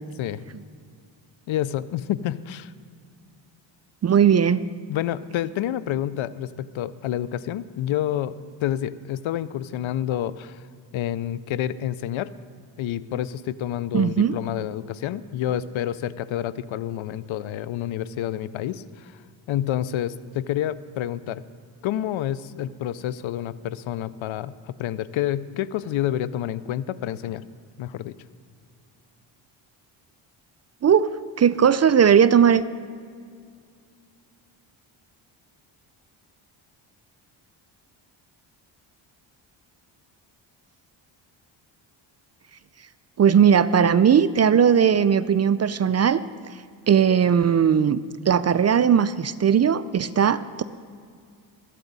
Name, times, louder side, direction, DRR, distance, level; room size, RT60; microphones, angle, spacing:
voice 1, 1.5-2.7 4.9-8.4 8.6-10.6 10.9-12.3 12.8-19.2 19.5-21.4 21.8-27.4 27.8-28.1, left 11 dB, 70° left, 17 dB, 0.6 m, -28 dB
voice 2, 4.0-4.7 13.9-14.4 30.8-32.6 43.2-46.2 46.9-48.0 48.3-50.6, right 8 dB, 35° right, 15 dB, 0.4 m, -18 dB
20.5 x 9.1 x 4.0 m, 2.2 s
cardioid pair, 70°, 50 cm